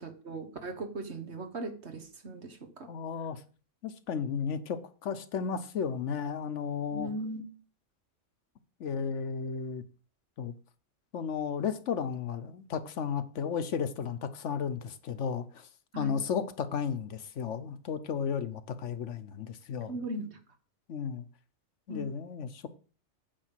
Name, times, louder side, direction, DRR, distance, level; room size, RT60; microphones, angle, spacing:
voice 1, 0.0-2.9 6.9-7.4 15.9-16.2 19.9-20.4 21.9-22.1, right 1 dB, 65° right, 1.7 m, -38 dB
voice 2, 2.9-3.4 3.8-7.1 8.8-9.8 10.4-10.5 11.1-15.7 16.0-19.9 20.9-21.2 21.9-22.7, left 6 dB, 75° left, 1.2 m, -34 dB
9.0 x 5.2 x 7.4 m
omnidirectional pair, 1.2 m